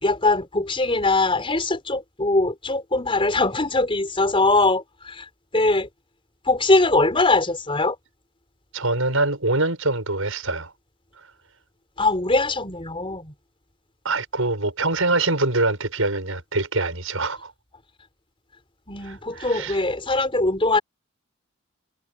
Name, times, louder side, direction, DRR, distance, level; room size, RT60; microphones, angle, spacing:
voice 1, 0.0-5.2 5.5-5.9 6.5-8.0 12.0-13.3 18.9-20.8, left 2 dB, 25° left, 4.4 m, -21 dB
voice 2, 8.7-10.7 14.0-17.5 19.0-19.8, right 2 dB, 70° right, 7.1 m, -24 dB
head